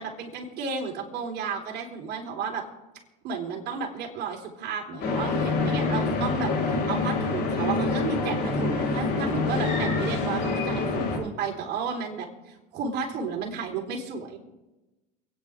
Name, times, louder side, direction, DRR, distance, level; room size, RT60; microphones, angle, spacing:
voice 1, 0.0-2.6 3.2-14.4, right 5 dB, 55° right, 0 dB, 4.0 m, -33 dB
sound 1, 5.0-11.2, left 3 dB, 55° left, 3.9 m, -26 dB
28.5 x 9.9 x 3.6 m, 1.1 s
supercardioid pair, 95°, 21 cm